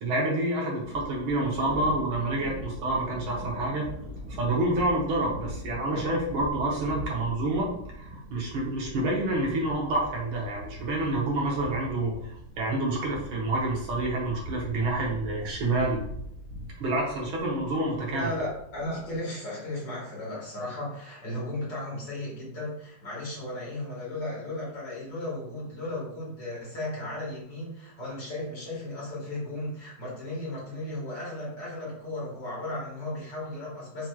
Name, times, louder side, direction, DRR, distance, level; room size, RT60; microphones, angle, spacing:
voice 1, 0.0-3.9 4.3-16.0 16.8-18.4, right 2 dB, 75° right, -2 dB, 1.8 m, -28 dB
Thunder, 0.8-19.2, equal, 25° right, 1.0 m, -42 dB
voice 2, 18.1-34.1, left 1 dB, 55° left, -6 dB, 2.3 m, -35 dB
6.1 x 2.9 x 2.3 m, 0.73 s
omnidirectional pair, 2.3 m